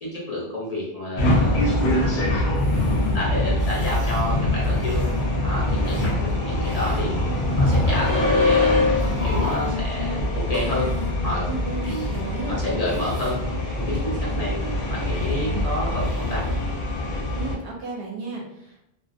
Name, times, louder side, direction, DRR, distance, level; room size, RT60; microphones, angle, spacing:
voice 1, 0.0-2.1 2.8-5.0 5.4-7.2 7.6-8.8 9.2-10.9 11.2-12.1 12.5-13.4 13.6-16.4, left 1 dB, 40° left, -5 dB, 0.8 m, -30 dB
sound 1, 1.2-17.6, left 2 dB, 75° left, 1.0 m, -23 dB
sound 2, 2.5-5.2 5.5-6.2 6.6-7.0 7.6-8.2 9.0-9.7 10.5-11.2 11.8-12.3 12.8-13.5 13.9-15.6 15.9-16.8, equal, 20° left, 0.4 m, -41 dB
sound 3, 4.2-9.7, equal, 45° right, 1.0 m, -40 dB
voice 2, 5.8-6.3 11.5-12.6 17.3-18.8, right 2 dB, 70° right, 0 dB, 0.8 m, -34 dB
2.4 x 2.4 x 2.5 m, 0.78 s
omnidirectional pair, 1.1 m